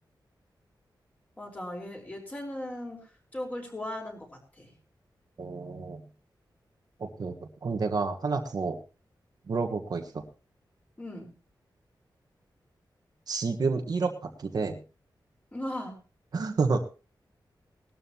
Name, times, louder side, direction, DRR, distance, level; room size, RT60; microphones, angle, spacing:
voice 1, 1.4-3.0 3.3-4.7 11.0-11.3 15.5-16.0, left 1 dB, 20° left, 1 dB, 4.5 m, -37 dB
voice 2, 5.4-6.0 7.0-8.8 9.5-10.2 13.3-14.8 16.3-16.8, right 4 dB, 55° right, 4 dB, 1.5 m, -30 dB
19.0 x 12.5 x 3.0 m, 0.32 s
wide cardioid pair, 180°, 8 cm